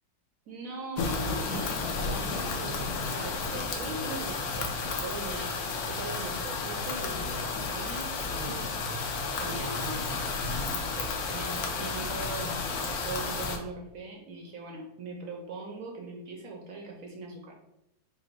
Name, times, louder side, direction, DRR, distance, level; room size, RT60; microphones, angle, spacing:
voice 1, 0.5-5.5 5.9-8.7 9.4-10.1 10.7-17.6, right 3 dB, 70° right, 1 dB, 0.8 m, -41 dB
sound 1, 1.0-13.6, left 4 dB, 65° left, 1.0 m, -32 dB
5.0 x 2.0 x 4.4 m, 0.84 s
omnidirectional pair, 2.1 m